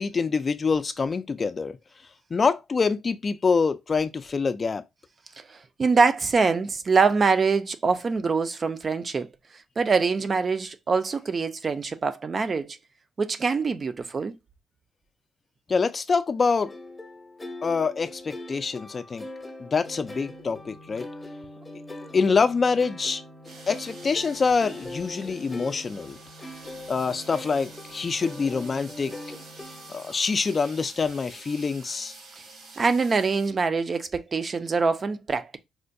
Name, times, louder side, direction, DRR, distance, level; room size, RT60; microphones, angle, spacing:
voice 1, 0.0-1.8 2.3-4.8 15.7-16.7 17.6-19.3 19.6-21.1 21.7-21.8 22.1-23.2 23.7-26.2 26.9-29.1 29.9-32.1, left 5 dB, 35° left, 0.3 m, -25 dB
voice 2, 5.4-9.3 9.8-12.8 13.2-14.3 32.8-35.6, right 4 dB, 40° right, 0.4 m, -24 dB
sound 1, 16.6-30.3, left 1 dB, 20° left, 0.7 m, -42 dB
Organ, 19.8-30.7, equal, 90° right, 2.3 m, -51 dB
sound 2, 23.4-33.5, right 3 dB, 75° right, 1.2 m, -48 dB
4.2 x 2.2 x 2.5 m
cardioid pair, 90°, 0 cm